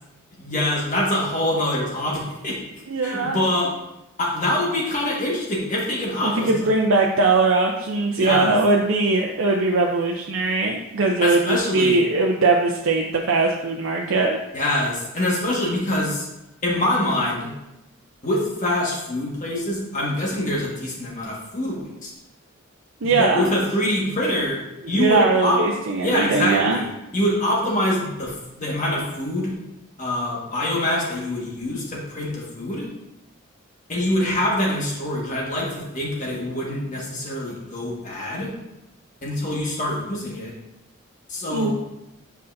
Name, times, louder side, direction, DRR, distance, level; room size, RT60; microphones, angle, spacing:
voice 1, 0.4-2.6 3.0-3.7 4.2-6.7 8.2-8.5 11.2-12.0 14.5-16.3 16.6-17.5 18.2-22.1 23.2-24.6 24.9-25.6 26.0-29.5 30.0-32.8 33.9-38.5 39.2-40.5 41.3-41.7, left 1 dB, 35° left, -4 dB, 1.5 m, -24 dB
voice 2, 2.9-3.4 6.2-14.4 23.0-23.5 24.9-26.8 41.5-41.7, right 3 dB, 70° right, 0 dB, 0.5 m, -20 dB
7.9 x 5.4 x 2.6 m, 0.92 s
head